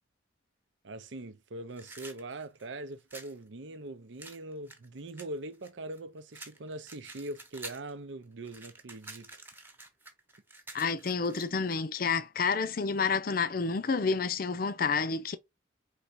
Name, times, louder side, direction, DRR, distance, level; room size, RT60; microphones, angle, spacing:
voice 1, 0.8-9.4, right 2 dB, 80° right, 0.7 m, -42 dB
sound 1, 1.7-3.4 4.2-6.0 6.3-7.9 8.2-11.8, right 2 dB, 10° right, 0.9 m, -48 dB
voice 2, 10.7-15.4, left 5 dB, 50° left, 0.5 m, -29 dB
4.7 x 3.4 x 2.6 m
head